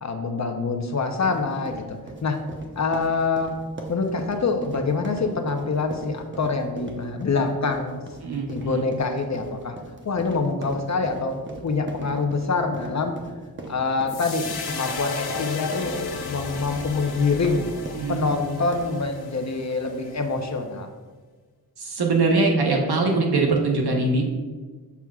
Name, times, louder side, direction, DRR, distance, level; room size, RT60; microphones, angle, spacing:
voice 1, 0.0-2.4 2.8-3.5 3.9-8.0 8.5-9.8 10.0-11.4 11.6-13.1 13.7-16.0 16.3-17.7 18.1-20.9, left 4 dB, 45° left, 5 dB, 0.7 m, -25 dB
sound 1, 1.0-19.1, right 2 dB, 30° right, 0.8 m, -40 dB
voice 2, 8.2-8.9 17.9-18.3 21.8-24.3, right 3 dB, 80° right, 1 dB, 1.0 m, -22 dB
sound 2, 14.1-20.5, left 4 dB, 90° left, 0.7 m, -34 dB
7.0 x 6.0 x 2.3 m, 1.4 s
wide cardioid pair, 100°, 38 cm